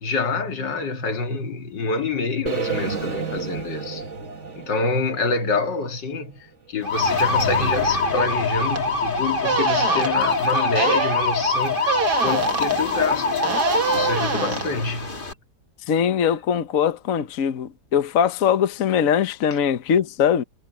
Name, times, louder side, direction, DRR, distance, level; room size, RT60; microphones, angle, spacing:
voice 1, 0.0-4.0 4.6-13.4 13.9-15.2, left 3 dB, 80° left, 2.5 m, -27 dB
sound 1, 2.5-6.5, right 6 dB, 40° right, 2.0 m, -31 dB
sound 2, 6.8-15.3, left 3 dB, 30° left, 2.3 m, -23 dB
sound 3, 8.7-8.8 9.4-10.1 10.7-11.2 11.8-12.8 13.4-14.7, right 6 dB, 60° right, 2.3 m, -25 dB
voice 2, 15.9-20.4, left 8 dB, 55° left, 1.2 m, -21 dB
omnidirectional pair, 1.9 m